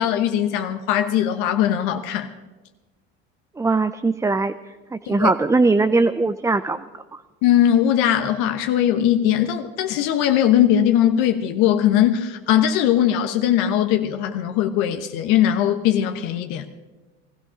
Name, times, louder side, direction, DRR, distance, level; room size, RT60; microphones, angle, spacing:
voice 1, 0.0-2.3 5.1-5.3 7.4-16.7, left 10 dB, 75° left, 1.1 m, -20 dB
voice 2, 3.6-4.5 4.9-6.8 7.1-7.2, right 3 dB, 10° right, 0.5 m, -20 dB
20.5 x 13.5 x 5.1 m
supercardioid pair, 85°, 31 cm